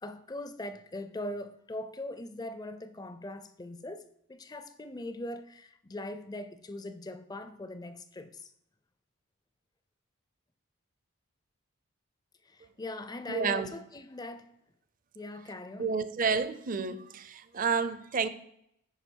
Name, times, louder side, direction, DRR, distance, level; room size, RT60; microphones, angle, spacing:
voice 1, 0.0-8.5 12.4-14.5 15.1-15.9, left 1 dB, 20° left, 0.4 m, -41 dB
voice 2, 13.3-13.7 15.8-18.3, right 5 dB, 40° right, 0.5 m, -30 dB
9.8 x 4.8 x 4.5 m
head